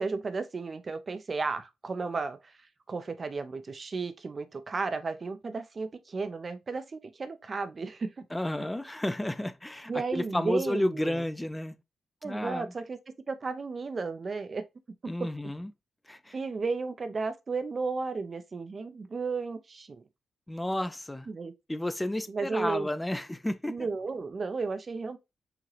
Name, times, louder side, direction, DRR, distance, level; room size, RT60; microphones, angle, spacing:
voice 1, 0.0-2.5 2.9-8.2 9.9-11.2 12.2-13.0 13.3-14.6 15.0-15.5 16.3-20.0 21.3-21.5 22.3-22.9 23.6-25.2, right 4 dB, 50° right, 0.6 m, -34 dB
voice 2, 8.3-11.8 12.2-12.7 15.1-15.7 16.1-16.3 20.5-21.3 21.7-23.8, left 1 dB, 15° left, 0.5 m, -32 dB
4.9 x 2.8 x 3.2 m
supercardioid pair, 45°, 0 cm